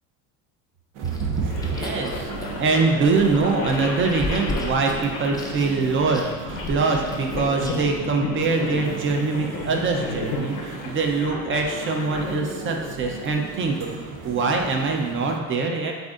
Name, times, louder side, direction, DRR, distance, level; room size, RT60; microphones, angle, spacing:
sound 1, 0.9-15.4, right 5 dB, 80° right, 0.7 m, -38 dB
Chewing mastication, 1.0-8.0, left 2 dB, 10° left, 0.5 m, -36 dB
voice 1, 1.0-15.9, right 4 dB, 30° right, 2 dB, 0.6 m, -24 dB
sound 2, 1.5-12.9, left 3 dB, 90° left, 0.8 m, -33 dB
7.8 x 2.6 x 2.5 m, 1.4 s
supercardioid pair, 110°, 39 cm